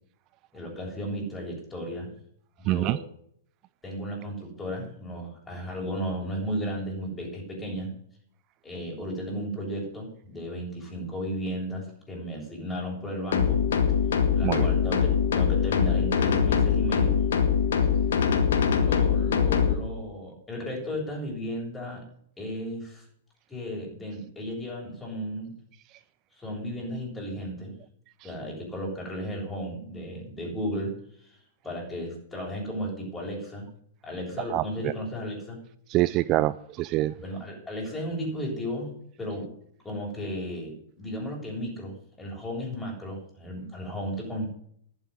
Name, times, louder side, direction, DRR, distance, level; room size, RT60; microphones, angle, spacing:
voice 1, 0.5-2.1 2.6-3.0 3.8-7.9 8.6-13.6 14.3-17.2 18.8-22.1 22.4-23.1 23.5-25.5 26.4-27.7 28.2-30.9 31.2-31.4 31.6-33.7 34.0-35.6 37.2-39.5 39.8-44.5, equal, 10° left, -1 dB, 7.4 m, -34 dB
voice 2, 2.7-3.0 14.4-14.7 34.5-34.9 35.9-37.1, right 16 dB, 35° right, 17 dB, 0.4 m, -25 dB
sound 1, 13.3-19.7, left 7 dB, 70° left, 2.0 m, -23 dB
11.5 x 7.9 x 9.9 m, 0.66 s
hypercardioid pair, 110°, 0 cm